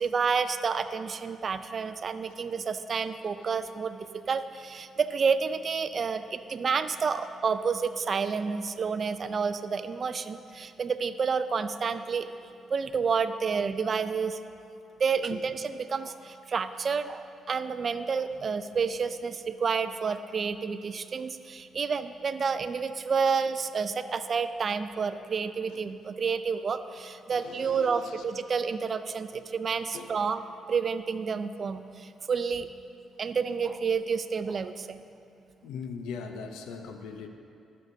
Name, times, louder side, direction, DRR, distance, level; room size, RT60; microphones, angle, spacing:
voice 1, 0.0-12.3 12.7-14.4 15.0-30.4 30.7-32.7 33.2-35.0, right 5 dB, 45° right, 11 dB, 0.4 m, -29 dB
voice 2, 27.3-28.1 29.9-30.1 35.6-37.3, left 5 dB, 85° left, 5 dB, 0.6 m, -40 dB
13.5 x 6.4 x 2.7 m, 2.5 s
cardioid pair, 75°, 0 cm